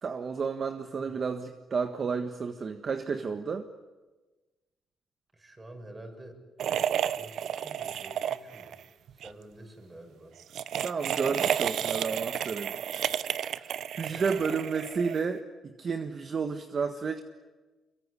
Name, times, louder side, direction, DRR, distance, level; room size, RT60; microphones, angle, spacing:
voice 1, 0.0-3.7 10.8-17.2, right 5 dB, 45° right, 7 dB, 1.5 m, -32 dB
voice 2, 5.3-6.4 7.1-8.8 9.1-10.4 11.9-12.0 14.0-14.4, right 1 dB, 20° right, 4 dB, 7.1 m, -48 dB
sound 1, 6.6-8.8 9.1-9.3 10.4-15.4, right 9 dB, 70° right, 0.8 m, -31 dB
24.0 x 23.0 x 9.9 m, 1.2 s
cardioid pair, 90°, 0 cm